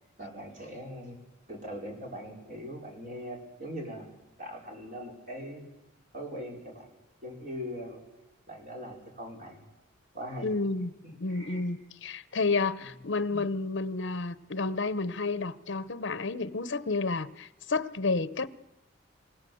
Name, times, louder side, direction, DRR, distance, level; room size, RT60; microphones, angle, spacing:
voice 1, 0.2-1.2 1.5-4.1 4.4-5.7 6.1-6.9 7.2-8.0 8.5-9.6 10.1-10.5 11.3-11.6 12.3-12.4 12.8-12.9 13.3-13.4, equal, 40° right, 4.9 m, -41 dB
voice 2, 10.4-10.9 11.2-18.5, left 3 dB, 65° left, 0.8 m, -30 dB
27.0 x 17.0 x 7.9 m
head